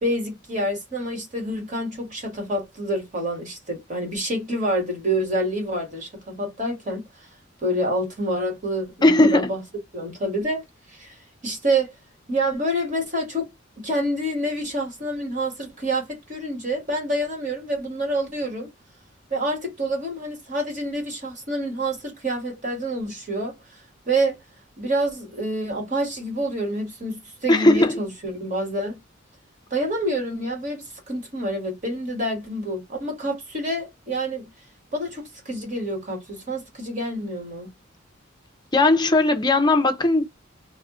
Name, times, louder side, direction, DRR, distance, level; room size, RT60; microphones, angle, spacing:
voice 1, 0.0-7.3 7.6-9.6 9.9-11.9 12.3-13.5 13.8-18.7 19.3-24.4 24.8-29.0 29.7-34.4 34.9-37.7, right 1 dB, 40° right, 1.3 m, -27 dB
voice 2, 9.0-9.5 27.5-27.9 38.7-40.2, left 2 dB, 20° left, 0.5 m, -17 dB
2.4 x 2.1 x 3.5 m
head